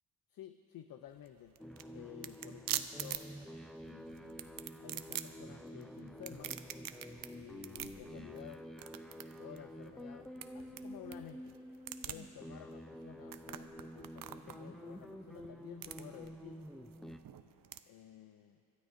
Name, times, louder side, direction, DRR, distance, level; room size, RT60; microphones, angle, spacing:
voice 1, 0.3-3.3 3.8-4.5 4.8-6.6 7.3-8.7 9.4-11.6 12.0-16.6 17.9-18.6, left 11 dB, 60° left, 9 dB, 0.5 m, -53 dB
sound 1, 1.1-17.8, right 10 dB, 60° right, 0.6 m, -46 dB
sound 2, 1.6-17.2, equal, ahead, 0.3 m, -49 dB
25.5 x 13.0 x 2.6 m, 2.7 s
cardioid pair, 110°, 39 cm